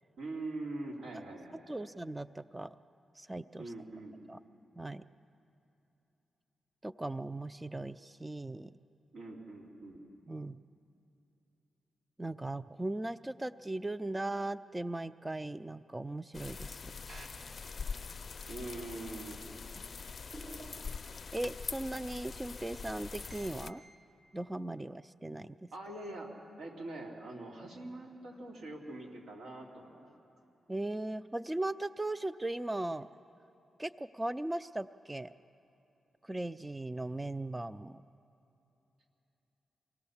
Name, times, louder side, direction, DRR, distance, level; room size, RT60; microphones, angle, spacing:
voice 1, 0.2-1.9 3.6-4.2 9.1-10.0 18.5-19.4 25.7-26.3 26.6-30.1, right 2 dB, 90° right, -1 dB, 3.0 m, -43 dB
voice 2, 1.7-2.8 3.2-3.7 4.3-4.4 4.8-5.0 6.8-8.7 10.3-10.6 12.2-16.9 21.3-23.8 24.3-25.7 30.7-33.1 33.8-35.3 36.2-38.0, right 2 dB, 15° right, 14 dB, 0.4 m, -38 dB
sound 1, 16.3-23.7, left 5 dB, 45° left, 0.5 m, -43 dB
sound 2, 17.1-18.1 20.3-21.5 23.3-24.0, right 2 dB, 65° right, 2.0 m, -53 dB
25.0 x 17.5 x 7.1 m, 3.0 s
cardioid pair, 80°, 0 cm